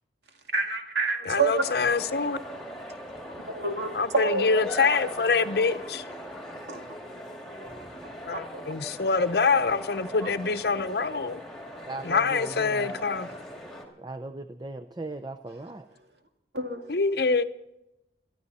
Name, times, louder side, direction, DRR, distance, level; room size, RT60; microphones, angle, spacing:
voice 1, 0.3-1.6 3.3-5.1 6.1-6.2 6.7-6.8 7.6-7.8 8.0-8.6 10.2-10.3 12.7-13.4 15.5-16.2 16.5-17.0, right 3 dB, 75° right, 2.2 m, -31 dB
voice 2, 1.3-2.4 4.0-4.1 4.4-6.0 8.3-8.4 8.7-11.4 12.0-13.3 16.9-17.4, left 4 dB, 65° left, 0.7 m, -25 dB
sound 1, 1.5-13.8, equal, 5° left, 2.3 m, -40 dB
voice 3, 11.9-12.9 14.0-15.9, right 2 dB, 25° right, 0.5 m, -38 dB
22.5 x 13.5 x 4.1 m
head